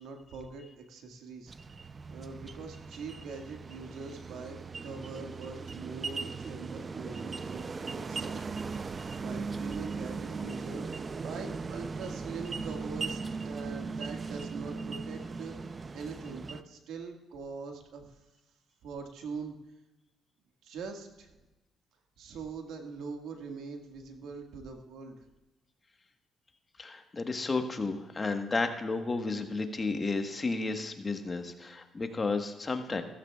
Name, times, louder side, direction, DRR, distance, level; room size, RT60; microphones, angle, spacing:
voice 1, 0.0-1.5 2.1-7.7 7.9-8.4 8.8-15.5 15.9-18.1 18.8-19.6 20.6-21.4 22.2-25.3, right 4 dB, 80° right, 3 dB, 1.8 m, -43 dB
sound 1, 1.5-16.6, right 4 dB, 35° right, 0.5 m, -38 dB
voice 2, 26.8-33.0, left 3 dB, 30° left, 5 dB, 1.3 m, -32 dB
16.0 x 14.0 x 2.4 m, 1.0 s
cardioid pair, 90°, 0 cm